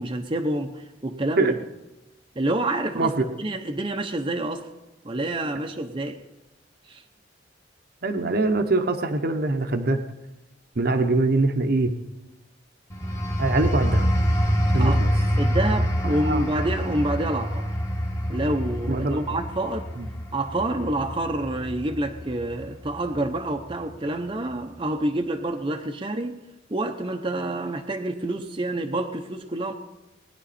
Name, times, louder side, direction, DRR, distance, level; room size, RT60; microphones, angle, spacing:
voice 1, 0.0-1.6 2.4-3.1 3.4-4.7 5.0-6.2 6.9-7.0 14.8-15.0 15.4-17.7 18.3-19.9 20.3-26.4 26.7-29.7, right 1 dB, 25° right, 3 dB, 0.8 m, -28 dB
voice 2, 2.9-3.3 8.0-10.0 10.8-11.9 13.4-14.1 14.7-15.1 16.1-16.4 18.9-19.4 20.0-20.1, right 2 dB, 55° right, 6 dB, 0.9 m, -23 dB
sound 1, 12.9-23.3 23.7-24.0, equal, 15° left, 1.4 m, -26 dB
20.5 x 10.0 x 4.2 m, 0.97 s
head